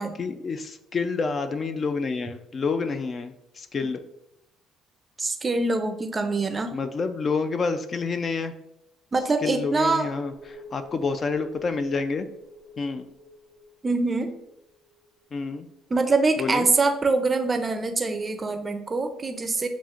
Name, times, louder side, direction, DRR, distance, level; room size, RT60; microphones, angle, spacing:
voice 1, 0.0-4.0 6.7-8.5 9.4-12.3 12.8-13.1 15.3-15.7 16.4-16.7, left 4 dB, 35° left, 9 dB, 0.3 m, -28 dB
voice 2, 5.2-6.8 9.1-10.1 13.8-14.3 15.9-19.7, right 3 dB, 25° right, 7 dB, 0.5 m, -24 dB
sound 1, 10.3-15.5 15.8-15.9, left 1 dB, 65° left, 1.5 m, -48 dB
7.2 x 2.4 x 2.4 m, 0.83 s
cardioid pair, 105°, 0 cm